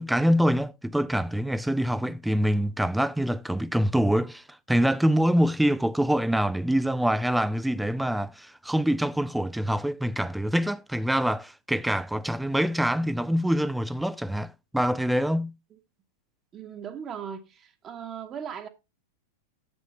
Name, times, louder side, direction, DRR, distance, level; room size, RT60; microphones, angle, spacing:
voice 1, 0.0-15.5, equal, 5° right, 0.5 m, -25 dB
voice 2, 16.5-18.7, right 8 dB, 30° right, 1.2 m, -38 dB
9.8 x 7.5 x 3.1 m
figure-of-eight pair, 95°, 0 cm